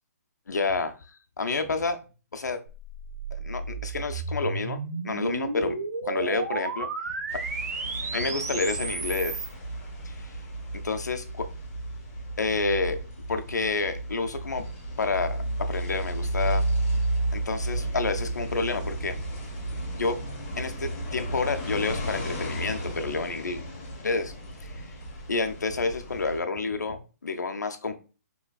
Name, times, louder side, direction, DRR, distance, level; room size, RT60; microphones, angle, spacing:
voice 1, 0.5-0.9 1.4-2.0 2.3-2.6 3.4-4.8 5.0-5.8 6.0-6.9 8.1-9.5 10.8-11.5 12.4-13.0 13.3-14.6 15.0-16.7 17.3-19.2 19.9-20.2 20.6-23.6 24.0-24.3 24.6-24.9 25.3-28.0, left 3 dB, 90° left, 7 dB, 0.6 m, -29 dB
sound 1, 2.7-9.5, right 4 dB, 70° right, 0.7 m, -33 dB
sound 2, 7.3-26.4, right 1 dB, 35° left, 1.5 m, -33 dB
3.9 x 2.9 x 2.3 m, 0.33 s
hypercardioid pair, 145°, 9 cm